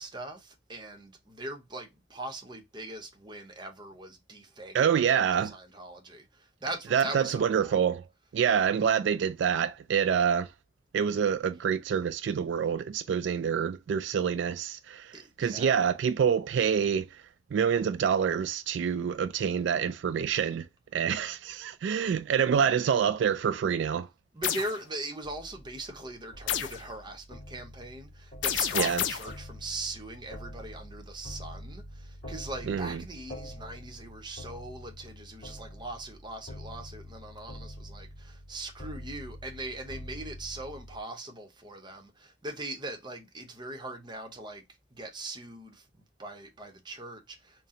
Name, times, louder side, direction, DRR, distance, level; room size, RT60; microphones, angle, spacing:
voice 1, 0.0-4.9 5.5-7.7 15.1-15.8 24.3-44.6 44.9-47.7, right 2 dB, 25° right, 0.8 m, -41 dB
voice 2, 4.7-5.6 6.9-8.0 8.3-10.5 10.9-17.2 17.5-20.7 20.9-24.1 28.7-29.0 32.7-33.0, right 7 dB, 70° right, 0.3 m, -27 dB
sound 1, 24.4-24.7 26.5-26.8 28.4-29.4, left 9 dB, 80° left, 0.5 m, -29 dB
sound 2, 25.2-41.0, left 1 dB, 30° left, 2.3 m, -46 dB
4.2 x 2.1 x 3.7 m
head